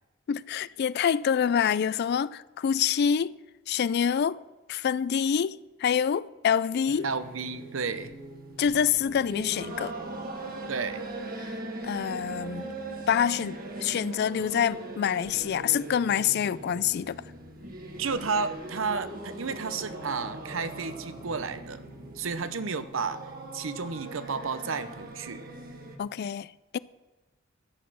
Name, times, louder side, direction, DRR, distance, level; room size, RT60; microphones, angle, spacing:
voice 1, 0.3-3.3 3.7-4.4 4.7-7.1 8.6-9.9 11.4-11.5 11.8-12.7 13.1-17.2 26.0-26.8, left 8 dB, 55° left, 0.3 m, -26 dB
sound 1, 6.9-26.0, right 2 dB, 45° right, 1.5 m, -40 dB
voice 2, 7.0-8.1 10.7-11.0 18.0-21.8 22.2-23.3 23.5-25.4, right 4 dB, 75° right, 0.8 m, -32 dB
13.0 x 8.1 x 6.3 m
head